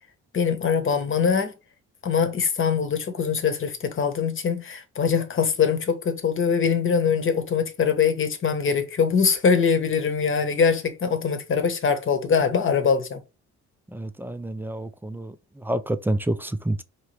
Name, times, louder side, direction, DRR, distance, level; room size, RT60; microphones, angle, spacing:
voice 1, 0.3-1.5 2.0-13.2, left 6 dB, 45° left, 1.1 m, -23 dB
voice 2, 13.9-16.8, right 1 dB, 5° right, 0.4 m, -28 dB
4.6 x 2.9 x 3.2 m
cardioid pair, 90°, 30 cm